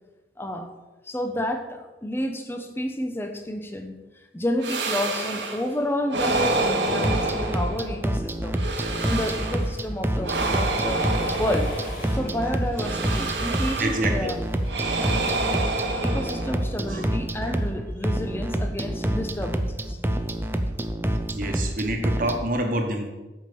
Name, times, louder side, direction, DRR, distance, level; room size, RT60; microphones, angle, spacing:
voice 1, 0.4-0.7 1.0-4.0 4.3-8.6 9.0-11.7 12.1-14.4 16.0-20.0, left 1 dB, 15° left, 5 dB, 0.8 m, -30 dB
sound 1, 4.6-5.7 6.1-8.1 8.5-9.8 10.2-12.2 12.8-14.2 14.7-16.8, right 2 dB, 85° right, 1.2 m, -28 dB
sound 2, 6.9-22.4, right 1 dB, 10° right, 0.5 m, -27 dB
Accelerating revving vroom, 9.6-14.9, left 1 dB, 50° left, 2.7 m, -45 dB
voice 2, 13.8-14.3 16.9-17.0 21.3-23.1, right 1 dB, 50° right, 3 dB, 1.3 m, -27 dB
8.8 x 5.3 x 6.8 m, 1.2 s
head